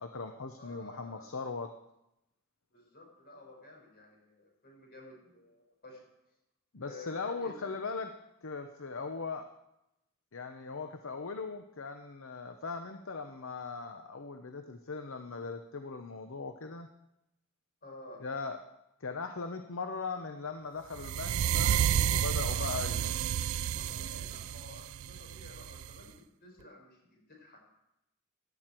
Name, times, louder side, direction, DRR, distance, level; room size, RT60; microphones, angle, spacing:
voice 1, 0.0-1.7 6.7-8.1 8.4-9.5 10.3-16.9 18.2-18.6 19.0-23.1, left 4 dB, 65° left, 7 dB, 0.9 m, -39 dB
voice 2, 0.6-1.3 2.7-6.0 6.8-7.8 17.8-18.3 22.3-23.1 23.7-27.6, left 2 dB, 50° left, 0 dB, 5.5 m, -51 dB
sound 1, 21.0-26.0, right 9 dB, 75° right, 0.4 m, -31 dB
16.5 x 12.0 x 4.6 m, 0.87 s
head